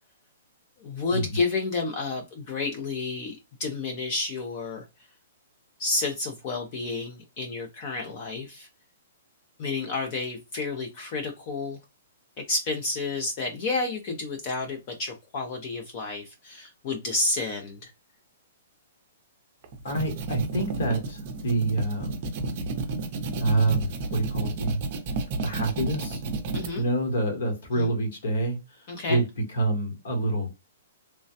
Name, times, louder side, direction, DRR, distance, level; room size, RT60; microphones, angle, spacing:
voice 1, 0.8-4.9 5.8-8.7 9.6-11.8 12.4-17.9 26.5-26.8 27.7-27.9 28.9-29.2, left 3 dB, 25° left, 0.4 m, -30 dB
sound 1, 19.6-26.7, right 3 dB, 30° right, 0.5 m, -31 dB
voice 2, 19.8-22.1 23.4-24.8 25.4-26.2 26.8-29.2 29.5-30.5, right 2 dB, 60° left, 1.1 m, -27 dB
3.1 x 2.1 x 2.6 m
hypercardioid pair, 175°, 0 cm